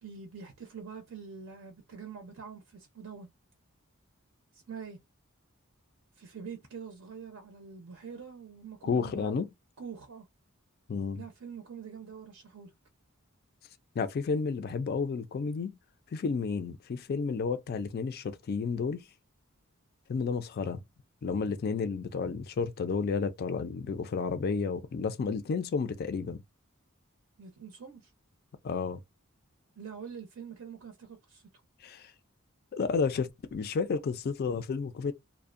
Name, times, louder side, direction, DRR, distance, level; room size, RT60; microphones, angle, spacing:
voice 1, 0.0-3.3 4.5-5.0 6.2-9.4 9.8-10.3 11.2-12.7 27.4-28.1 29.8-31.4, right 6 dB, 70° right, 0.5 m, -45 dB
voice 2, 8.8-9.5 10.9-11.2 14.0-15.8 16.1-19.0 20.1-20.8 21.2-26.4 28.6-29.0 31.8-32.1 32.7-35.1, left 5 dB, 45° left, 0.3 m, -31 dB
2.5 x 2.0 x 2.4 m
head